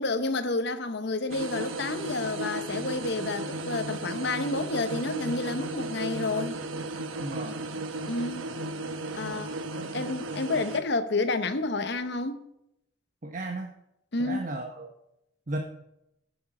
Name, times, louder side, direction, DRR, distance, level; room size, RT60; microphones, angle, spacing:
voice 1, 0.0-6.6 8.1-8.5 9.1-9.5 9.9-12.4 14.1-14.5, left 3 dB, 60° left, 1.0 m, -30 dB
sound 1, 1.3-10.8, right 2 dB, 85° right, 1.0 m, -35 dB
voice 2, 7.2-7.6 8.5-8.6 9.8-9.9 13.2-13.7 14.2-14.9 15.5-15.6, right 2 dB, 40° right, 1.0 m, -35 dB
14.0 x 6.9 x 6.2 m
head